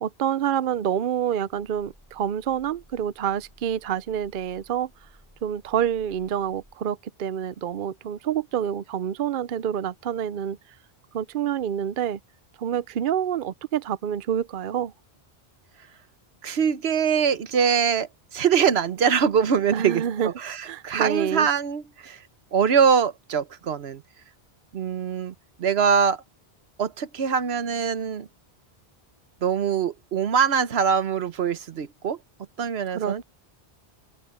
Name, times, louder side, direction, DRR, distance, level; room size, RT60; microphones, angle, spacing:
voice 1, 0.0-4.9 5.4-10.6 11.1-12.2 12.6-14.9 19.7-20.3 20.6-21.5 32.9-33.2, right 9 dB, 60° right, 0.7 m, -27 dB
sound 1, 1.5-6.8, equal, 10° right, 5.8 m, -56 dB
voice 2, 16.4-22.2 22.5-24.0 24.7-25.3 25.6-26.2 26.8-28.3 29.4-32.2 32.6-33.2, right 7 dB, 75° right, 1.2 m, -23 dB
omnidirectional pair, 1.1 m